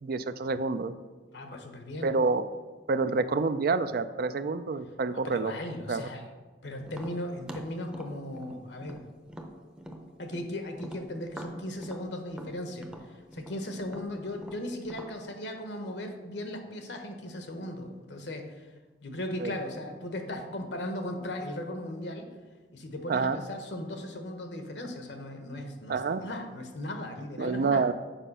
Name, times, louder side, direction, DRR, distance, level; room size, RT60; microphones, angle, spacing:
voice 1, 0.0-0.9 2.0-2.4 2.9-5.5 5.9-6.1 19.4-19.5 23.1-23.4 25.9-26.2 27.4-27.9, right 4 dB, 55° right, 12 dB, 0.4 m, -28 dB
voice 2, 1.3-2.1 5.1-6.2 6.6-9.0 10.2-13.1 13.3-18.7 19.0-22.3 22.7-27.8, left 1 dB, 75° left, 5 dB, 1.1 m, -37 dB
Tap, 6.9-10.5 10.8-15.2, equal, 5° right, 0.7 m, -44 dB
7.3 x 4.9 x 5.6 m, 1.3 s
head